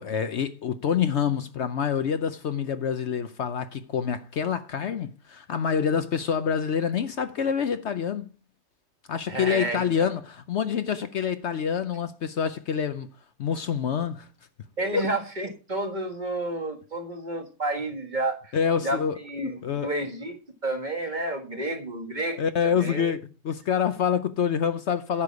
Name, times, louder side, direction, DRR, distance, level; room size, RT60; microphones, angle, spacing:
voice 1, 0.0-8.3 9.1-13.1 13.4-14.3 14.9-15.1 18.5-19.2 19.4-19.9 22.4-25.2, left 7 dB, 65° left, 0.7 m, -27 dB
voice 2, 9.3-10.1 14.8-18.5 18.8-23.1, right 2 dB, 25° right, 1.7 m, -31 dB
10.5 x 6.8 x 4.7 m
omnidirectional pair, 1.8 m